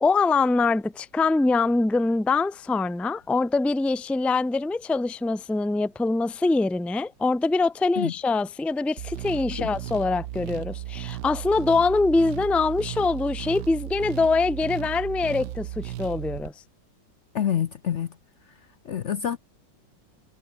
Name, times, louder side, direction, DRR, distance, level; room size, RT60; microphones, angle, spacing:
voice 1, 0.0-16.5, left 3 dB, ahead, 0.4 m, -24 dB
sound 1, 9.0-16.5, right 14 dB, 70° right, 1.2 m, -35 dB
voice 2, 17.3-18.1 18.8-19.4, left 9 dB, 60° left, 0.7 m, -27 dB
omnidirectional pair, 2.1 m